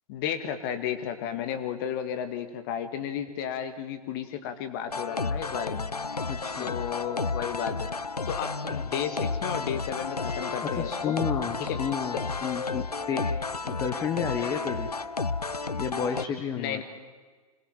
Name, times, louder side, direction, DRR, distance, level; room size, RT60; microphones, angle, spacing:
voice 1, 0.1-5.9 6.6-7.9 8.3-11.2 11.7-11.8 13.9-14.0 16.6-16.8, left 9 dB, 35° left, 8 dB, 2.1 m, -33 dB
sound 1, 4.9-16.2, left 4 dB, 85° left, 0.7 m, -32 dB
voice 2, 6.3-6.7 10.2-10.4 10.8-13.4 13.6-14.9 15.8-16.8, left 7 dB, 15° left, 5 dB, 1.4 m, -32 dB
26.0 x 20.5 x 7.4 m, 1.4 s
figure-of-eight pair, 115°, 19 cm